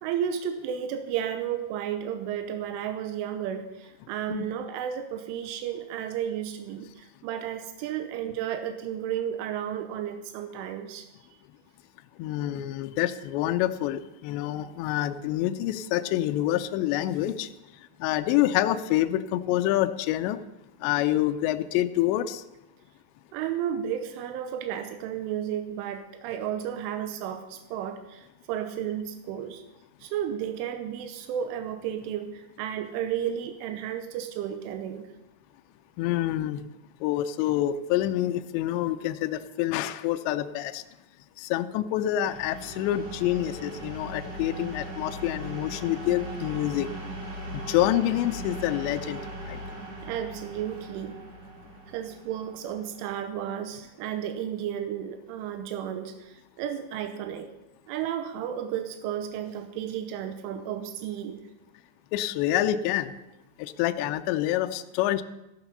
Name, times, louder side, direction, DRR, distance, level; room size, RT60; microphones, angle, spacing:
voice 1, 0.0-11.1 23.3-29.6 30.0-35.1 50.0-51.2 51.9-57.5 57.9-61.5, right 9 dB, 90° right, 7 dB, 3.3 m, -33 dB
voice 2, 12.2-17.5 18.0-20.4 20.8-22.4 36.0-36.6 37.0-40.8 41.4-46.9 47.7-49.6 62.1-63.1 63.6-65.2, left 13 dB, 80° left, 9 dB, 2.7 m, -27 dB
sound 1, 42.2-53.8, right 1 dB, 25° right, 3.0 m, -39 dB
14.5 x 12.0 x 5.5 m, 0.95 s
omnidirectional pair, 5.6 m